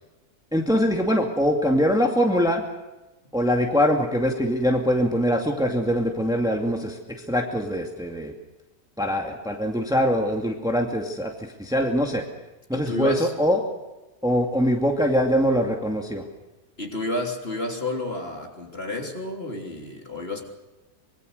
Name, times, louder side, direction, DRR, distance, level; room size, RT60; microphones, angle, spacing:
voice 1, 0.5-2.6 3.3-7.0 7.3-8.3 9.0-12.2 12.7-13.6 14.2-16.2, equal, ahead, 2 dB, 2.3 m, -23 dB
voice 2, 12.7-13.3 16.8-20.4, left 2 dB, 40° left, 2 dB, 3.7 m, -30 dB
25.0 x 22.5 x 6.7 m, 1.1 s
omnidirectional pair, 1.7 m